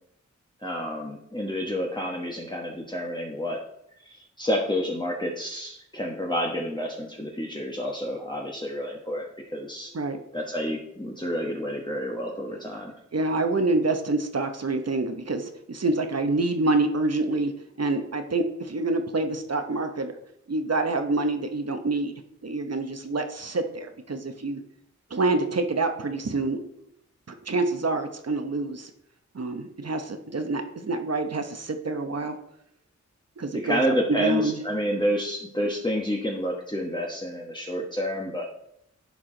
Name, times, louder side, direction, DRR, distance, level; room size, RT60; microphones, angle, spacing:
voice 1, 0.6-3.6 4.1-9.9 10.3-12.9 33.6-38.4, equal, 15° left, -1 dB, 1.3 m, -29 dB
voice 2, 13.1-17.5 17.8-20.2 20.5-22.1 22.4-24.6 25.1-26.6 27.3-28.9 29.3-32.4 33.4-34.6, right 2 dB, 55° right, 6 dB, 1.0 m, -27 dB
10.5 x 4.7 x 3.9 m, 0.75 s
cardioid pair, 50°, 30 cm